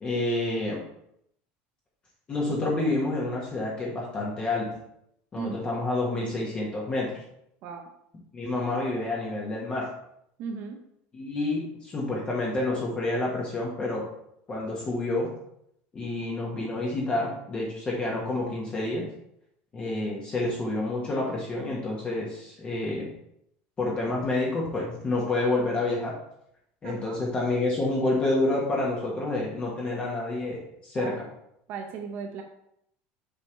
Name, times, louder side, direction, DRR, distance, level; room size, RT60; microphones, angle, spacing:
voice 1, 0.0-0.8 2.3-4.8 5.3-7.2 8.3-9.9 11.1-14.1 14.5-15.3 15.9-19.0 19.7-23.1 23.8-26.1 26.8-31.2, left 2 dB, 20° left, -3 dB, 1.4 m, -28 dB
voice 2, 10.4-10.8 26.8-27.2 31.0-31.3 31.7-32.4, right 5 dB, 50° right, 3 dB, 0.8 m, -36 dB
7.0 x 3.6 x 4.5 m, 0.75 s
cardioid pair, 155°, 5 cm